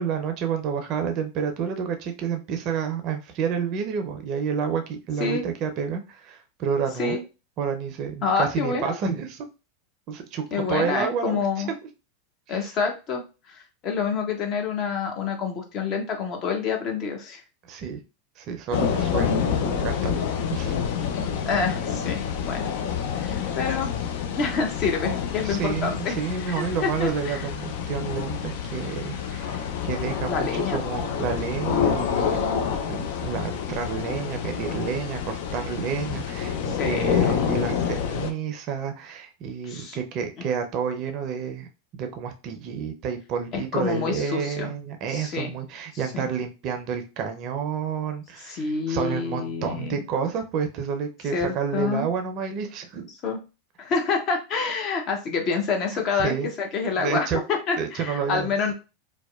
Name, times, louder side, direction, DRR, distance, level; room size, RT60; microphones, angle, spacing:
voice 1, 0.0-7.2 7.6-9.5 10.1-11.6 12.5-12.7 17.7-18.0 18.4-20.7 25.4-32.5 32.9-41.7 41.9-53.1 55.9-56.5 57.0-57.4 57.8-58.7, right 6 dB, 45° right, 6 dB, 0.5 m, -30 dB
voice 2, 8.2-9.0 10.5-11.7 12.5-17.4 21.5-22.7 23.2-23.9 24.3-26.2 26.4-27.4 30.3-30.8 36.7-37.3 39.6-40.0 40.4-40.5 43.5-44.7 45.1-45.5 46.1-46.3 48.5-50.0 51.3-52.1 53.2-53.4 53.8-58.7, left 5 dB, 40° left, 3 dB, 0.7 m, -27 dB
sound 1, 18.7-38.3, left 7 dB, 60° left, 0.4 m, -28 dB
2.7 x 2.1 x 2.3 m, 0.30 s
hypercardioid pair, 95°, 0 cm